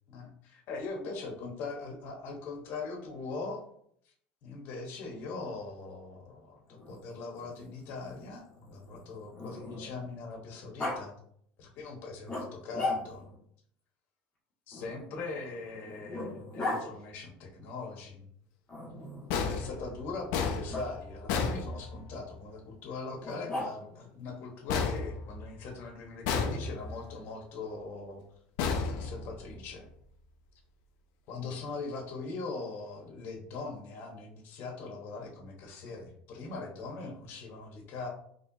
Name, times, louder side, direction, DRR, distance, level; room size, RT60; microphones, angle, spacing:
voice 1, 0.1-3.6 4.4-11.1 11.6-13.3 14.7-18.2 19.3-28.2 28.9-29.9 31.3-38.1, left 3 dB, 55° left, 1 dB, 1.1 m, -41 dB
Growling, 6.7-10.1 10.8-11.0 12.3-13.4 14.7-16.8 18.7-19.4 20.7-20.9 23.2-24.0, left 2 dB, 20° left, 1.5 m, -38 dB
sound 1, 19.3-22.3 24.7-25.8 26.2-27.1 28.6-29.7, left 5 dB, 70° left, 0.6 m, -33 dB
4.4 x 3.2 x 2.7 m, 0.67 s
cardioid pair, 140°, 4 cm